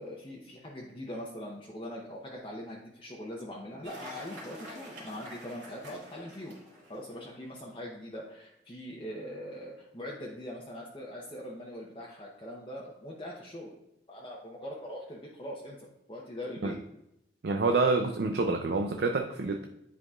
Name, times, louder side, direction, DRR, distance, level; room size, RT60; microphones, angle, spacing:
voice 1, 0.0-6.5 6.9-13.7 14.1-16.8, equal, 30° left, -4 dB, 0.8 m, -42 dB
Cheering / Applause, 3.8-7.5, left 1 dB, 85° right, 2.3 m, -47 dB
voice 2, 17.4-19.7, right 3 dB, 60° right, 4 dB, 0.5 m, -27 dB
9.9 x 4.7 x 2.4 m, 0.85 s
head